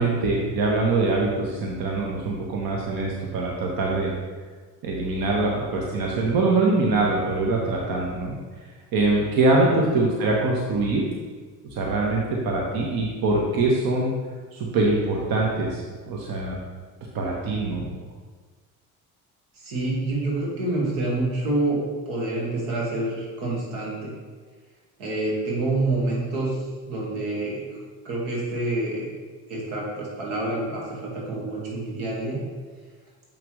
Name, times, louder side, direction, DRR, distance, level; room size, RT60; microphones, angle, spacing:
voice 1, 0.0-4.1 4.8-8.3 8.9-11.0 11.7-14.1 14.5-16.6 17.1-17.9, right 2 dB, 55° right, -2 dB, 1.2 m, -23 dB
voice 2, 19.6-24.1 25.0-26.6 26.9-27.7 28.0-29.1 29.5-32.4, right 2 dB, 80° right, -4 dB, 2.0 m, -27 dB
6.7 x 5.9 x 3.2 m, 1.4 s
hypercardioid pair, 65°, 42 cm